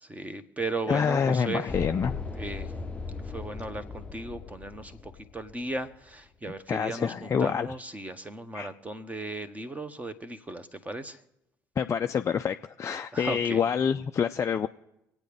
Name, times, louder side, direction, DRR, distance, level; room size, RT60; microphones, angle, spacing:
voice 1, 0.0-1.8 2.3-2.7 3.2-11.2 13.1-13.6, right 2 dB, 15° right, 10 dB, 1.2 m, -36 dB
voice 2, 0.9-2.2 6.7-7.7 8.5-8.7 11.8-14.7, left 7 dB, 30° left, 6 dB, 0.5 m, -27 dB
sound 1, 1.7-6.0, left 4 dB, 10° left, 0.8 m, -38 dB
25.5 x 8.8 x 3.4 m, 0.87 s
figure-of-eight pair, 55°, 10 cm